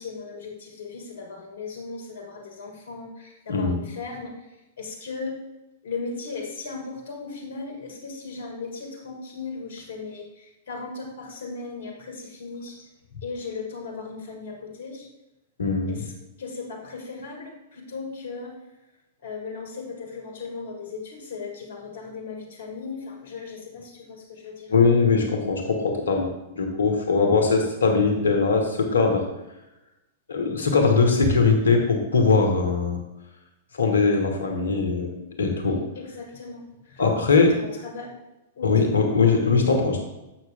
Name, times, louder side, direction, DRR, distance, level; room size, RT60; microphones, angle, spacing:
voice 1, 0.0-4.4 4.8-5.4 5.8-12.8 13.2-15.1 15.9-16.1 16.4-18.6 19.2-24.7 31.1-31.5 35.7-38.1 38.6-39.0, left 4 dB, 65° left, 2 dB, 1.8 m, -37 dB
voice 2, 15.6-16.0 24.7-29.3 30.3-33.0 33.7-35.1 35.4-35.8 37.0-37.5 38.6-40.0, left 4 dB, 80° left, 4 dB, 1.5 m, -21 dB
8.2 x 6.1 x 3.5 m, 0.98 s
hypercardioid pair, 105°, 0 cm